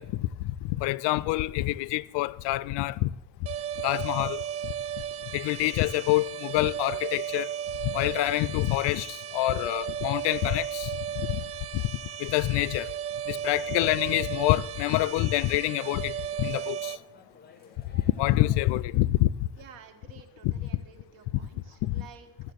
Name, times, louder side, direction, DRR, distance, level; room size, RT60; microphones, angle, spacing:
voice 1, 0.0-3.1 3.8-4.4 5.3-7.5 7.8-11.4 11.7-11.8 12.2-12.9 13.3-17.0 17.9-19.5 20.4-20.7 21.8-22.1, left 17 dB, 60° left, 0.5 m, -27 dB
sound 1, 3.5-17.0, right 10 dB, 30° right, 0.4 m, -35 dB
sound 2, 13.8-18.8, left 4 dB, 20° left, 1.7 m, -55 dB
voice 2, 19.6-22.5, right 7 dB, 80° right, 1.8 m, -52 dB
14.0 x 7.2 x 7.9 m
cardioid pair, 135°, 49 cm